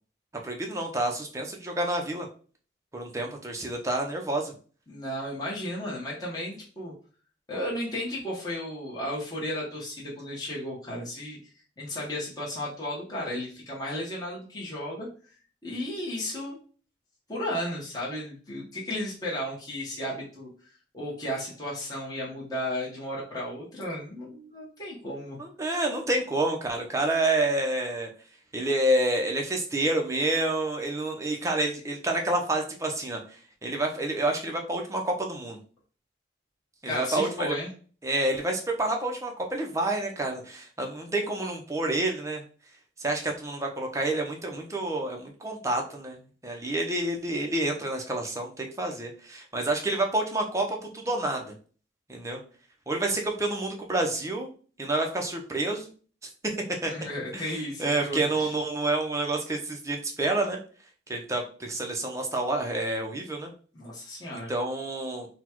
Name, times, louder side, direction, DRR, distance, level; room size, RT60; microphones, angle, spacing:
voice 1, 0.4-2.3 2.9-4.5 25.4-28.1 28.5-33.2 33.6-35.6 36.8-37.5 38.0-42.4 43.0-46.2 46.4-51.5 52.1-52.4 52.9-54.5 54.8-55.9 56.8-56.9 57.3-57.4 57.8-60.6 61.1-63.5 64.3-65.3, right 2 dB, 15° right, 2 dB, 0.7 m, -28 dB
voice 2, 4.9-6.9 7.5-11.4 11.8-15.3 15.6-16.6 17.3-20.5 20.9-25.4 36.8-37.7 56.8-58.6 63.7-64.5, left 1 dB, 20° left, -5 dB, 1.2 m, -34 dB
4.1 x 2.3 x 4.4 m, 0.40 s
head